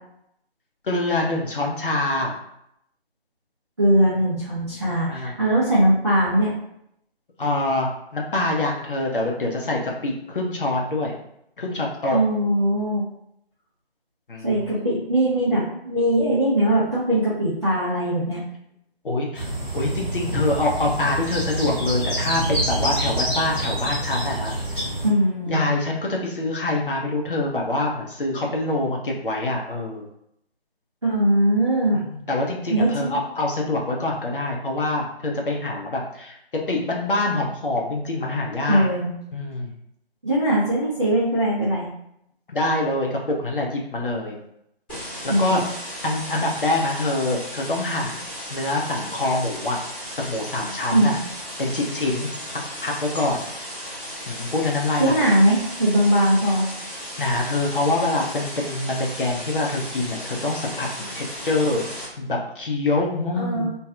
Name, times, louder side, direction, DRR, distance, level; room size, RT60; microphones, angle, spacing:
voice 1, 0.8-2.4 5.1-5.3 7.4-11.1 11.6-12.2 14.3-14.9 19.0-19.5 19.7-24.8 25.5-30.1 31.9-36.4 36.7-38.9 39.3-39.7 42.5-44.4 45.2-45.6 46.0-49.8 50.2-51.2 51.6-52.3 52.8-53.5 54.3-55.3 57.2-61.8 62.2-63.7, left 2 dB, 60° left, -1 dB, 0.6 m, -25 dB
voice 2, 3.8-6.5 12.1-13.0 14.4-18.4 25.0-25.6 31.0-32.0 32.7-33.1 38.7-39.1 40.2-41.9 45.3-45.6 50.9-51.2 55.0-56.6 63.3-63.7, right 1 dB, 30° right, -10 dB, 0.5 m, -20 dB
sound 1, 19.3-25.1, right 1 dB, 15° right, 1.0 m, -27 dB
sound 2, 44.9-62.1, equal, 10° left, 0.8 m, -35 dB
2.6 x 2.3 x 2.3 m, 0.76 s
figure-of-eight pair, 155°, 31 cm